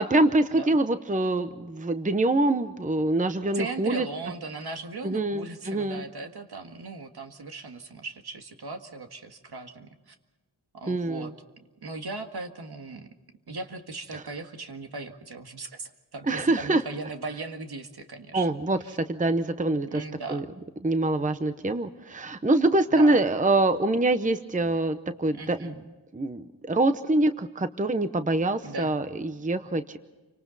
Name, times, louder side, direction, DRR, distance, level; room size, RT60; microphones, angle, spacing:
voice 1, 0.0-4.1 5.0-6.0 10.9-11.3 14.1-14.2 16.3-16.8 18.3-18.8 19.1-20.0 20.3-20.4 20.8-25.7 26.1-30.0, right 2 dB, 20° right, 10 dB, 0.8 m, -25 dB
voice 2, 3.5-10.2 10.7-13.1 13.5-18.5 18.8-19.0 19.9-20.5 23.0-23.2 25.3-25.8 28.6-28.9, right 3 dB, 65° right, 5 dB, 1.9 m, -38 dB
29.0 x 25.0 x 4.1 m, 1.2 s
wide cardioid pair, 120°, 42 cm